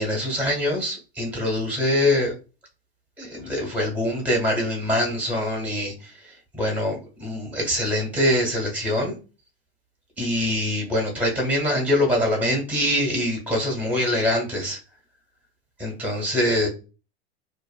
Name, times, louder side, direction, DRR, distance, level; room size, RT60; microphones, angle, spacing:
voice 1, 0.0-2.3 3.2-9.1 10.2-14.8 15.8-16.7, left 1 dB, 5° right, 1.2 m, -24 dB
2.7 x 2.4 x 2.3 m
supercardioid pair, 130°, 31 cm